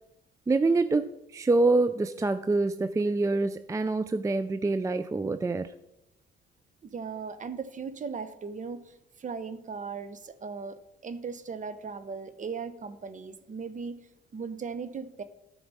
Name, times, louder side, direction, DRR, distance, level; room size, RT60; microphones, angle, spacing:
voice 1, 0.5-5.7, right 3 dB, 15° right, 11 dB, 0.4 m, -26 dB
voice 2, 6.8-13.9 14.3-15.2, right 5 dB, 40° right, 12 dB, 0.9 m, -38 dB
13.5 x 4.8 x 5.4 m, 0.87 s
cardioid pair, 90°, 20 cm